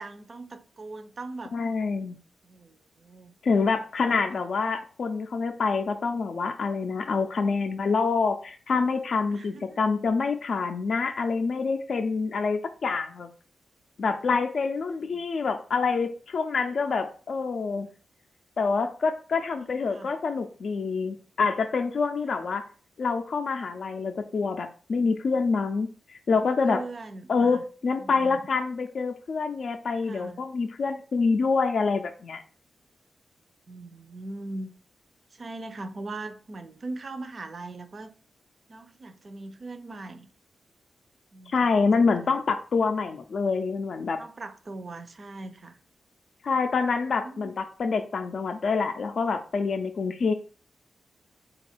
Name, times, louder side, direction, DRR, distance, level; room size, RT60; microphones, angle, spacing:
voice 1, 0.0-1.6 2.4-3.4 4.1-4.4 9.3-9.8 15.1-15.3 19.6-20.1 22.2-22.5 26.3-27.6 28.0-28.4 30.0-30.4 33.7-34.7 35.3-38.1 38.7-40.3 41.3-42.1 44.2-45.8 47.1-47.5, right 2 dB, 45° right, 0.5 m, -40 dB
voice 2, 1.5-2.2 3.4-13.3 14.0-17.9 18.6-22.6 23.0-25.9 26.3-26.8 27.3-32.4 41.5-44.2 46.4-50.3, left 4 dB, 60° left, 0.4 m, -26 dB
3.9 x 2.3 x 4.4 m
cardioid pair, 90°, 0 cm